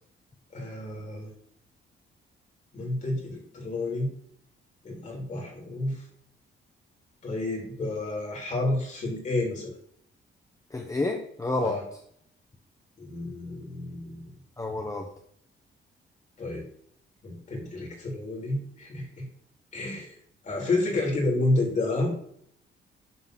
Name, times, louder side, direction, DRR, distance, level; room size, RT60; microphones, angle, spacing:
voice 1, 0.5-1.3 2.7-4.1 4.8-6.0 7.2-9.7 11.6-11.8 13.0-14.2 16.4-16.6 17.2-19.2 19.7-20.1 20.4-22.3, left 2 dB, 35° left, 1 dB, 2.9 m, -30 dB
voice 2, 10.7-11.7 14.6-15.0, left 2 dB, 15° left, 2 dB, 0.8 m, -29 dB
11.0 x 3.8 x 6.0 m, 0.67 s
cardioid pair, 170°, 21 cm